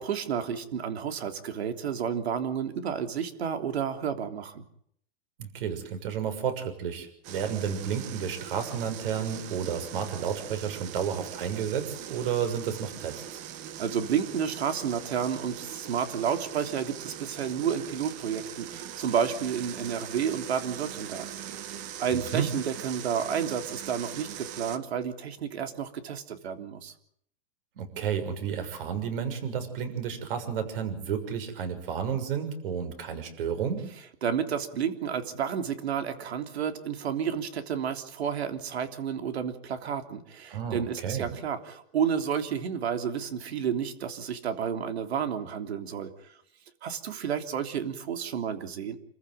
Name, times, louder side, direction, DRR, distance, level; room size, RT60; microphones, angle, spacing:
voice 1, 0.0-4.6 13.8-21.3 21.5-21.6 22.0-26.9 34.2-46.1 46.8-49.0, right 7 dB, 85° right, 7 dB, 3.5 m, -31 dB
voice 2, 5.4-13.4 22.1-22.5 27.8-33.9 40.5-41.3, right 7 dB, 60° right, 8 dB, 6.6 m, -31 dB
sound 1, 7.2-24.8, right 10 dB, 25° right, 1.1 m, -41 dB
28.0 x 15.0 x 9.2 m, 0.68 s
supercardioid pair, 165°, 31 cm